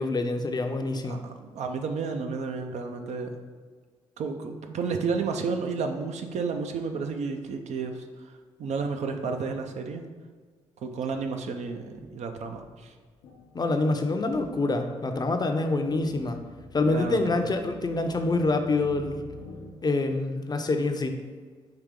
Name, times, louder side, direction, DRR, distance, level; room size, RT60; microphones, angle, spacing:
voice 1, 0.0-1.3 13.5-16.4 16.7-19.2 19.8-21.2, left 2 dB, 35° left, 6 dB, 0.5 m, -26 dB
voice 2, 1.1-3.4 4.2-8.0 8.6-10.0 10.8-12.9 16.9-17.4, right 4 dB, 70° right, 5 dB, 0.5 m, -31 dB
sound 1, 11.9-12.1 12.3-19.7, left 2 dB, 85° left, 0.6 m, -48 dB
4.8 x 2.8 x 3.6 m, 1.5 s
supercardioid pair, 50°, 12 cm